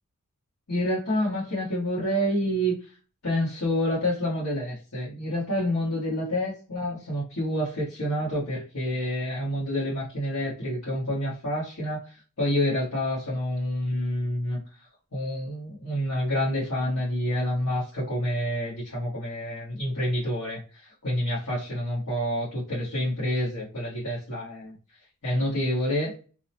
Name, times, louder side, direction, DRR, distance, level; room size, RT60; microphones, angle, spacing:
voice 1, 0.7-2.7 3.2-14.6 15.1-24.7 25.2-26.1, equal, 80° left, -9 dB, 1.4 m, -28 dB
2.8 x 2.1 x 2.7 m, 0.35 s
head